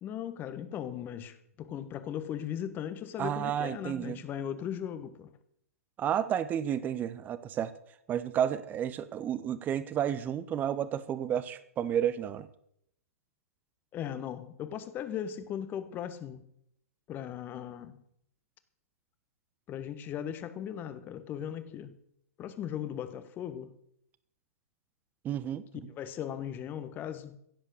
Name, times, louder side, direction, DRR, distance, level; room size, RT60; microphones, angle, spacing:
voice 1, 0.0-5.3 13.9-16.4 17.1-18.0 19.7-21.9 22.4-23.7 25.9-27.3, left 9 dB, 25° left, 1.4 m, -38 dB
voice 2, 3.2-4.2 6.0-7.7 8.1-12.5 25.2-25.6, right 9 dB, 20° right, 1.0 m, -31 dB
16.5 x 8.0 x 6.5 m
figure-of-eight pair, 110°, 8 cm